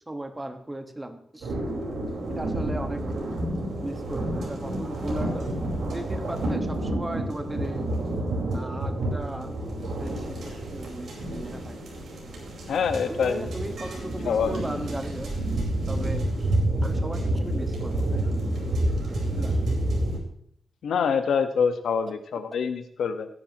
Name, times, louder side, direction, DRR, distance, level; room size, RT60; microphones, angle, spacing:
voice 1, 0.1-1.5 2.3-3.0 3.8-5.5 5.9-7.9 8.5-9.5 10.0-11.8 13.1-15.3 15.9-16.5 16.8-18.3 18.9-19.5, right 1 dB, 15° right, 6 dB, 1.5 m, -37 dB
sound 1, 1.4-20.2, right 1 dB, 70° right, 4.7 m, -29 dB
voice 2, 12.7-13.5 14.2-14.6 20.8-23.3, left 6 dB, 85° left, 8 dB, 1.3 m, -25 dB
18.0 x 10.5 x 3.0 m, 0.66 s
wide cardioid pair, 115°, 0 cm